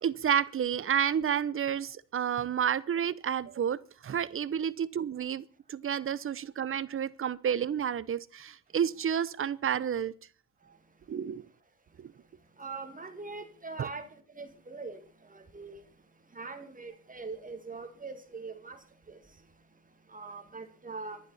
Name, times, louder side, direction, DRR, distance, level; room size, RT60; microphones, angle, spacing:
voice 1, 0.0-10.1 11.1-11.4 12.0-12.1 13.8-13.9, right 8 dB, 45° right, 0.9 m, -30 dB
voice 2, 12.6-14.1 14.4-15.0 15.3-15.8 16.3-18.8 19.1-19.2 20.1-21.2, right 4 dB, 25° right, 2.1 m, -42 dB
24.5 x 11.0 x 4.2 m
cardioid pair, 90°, 30 cm